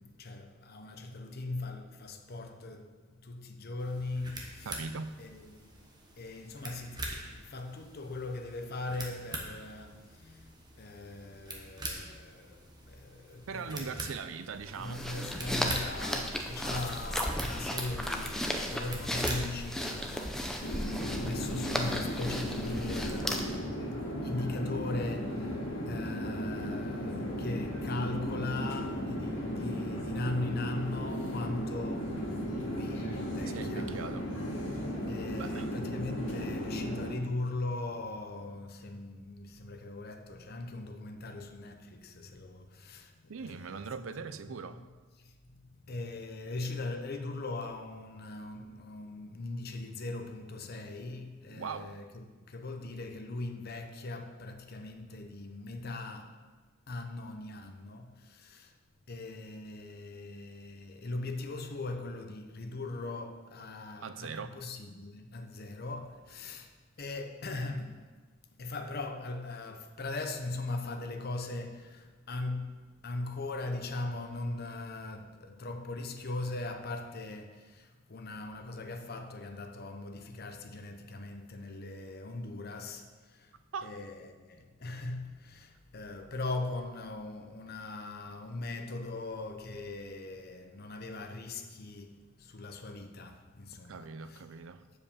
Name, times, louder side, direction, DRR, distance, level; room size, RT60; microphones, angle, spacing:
voice 1, 0.0-4.8 5.2-5.9 6.2-14.0 14.8-34.0 34.6-43.8 44.5-44.8 45.2-56.5 56.9-58.7 59.1-68.1 68.6-83.6 83.8-94.4 94.8-94.9, left 2 dB, 50° left, 0.8 m, -40 dB
sound 1, 3.8-19.7, right 1 dB, 20° right, 1.1 m, -44 dB
voice 2, 4.7-5.1 13.5-15.0 33.5-34.2 35.4-35.7 43.3-44.8 51.5-51.9 64.0-64.6 83.7-83.9 93.9-94.8, right 5 dB, 80° right, 0.5 m, -40 dB
sound 2, 14.6-23.6, equal, ahead, 0.6 m, -35 dB
sound 3, 20.6-37.1, equal, 70° left, 1.9 m, -35 dB
7.3 x 5.1 x 7.0 m
head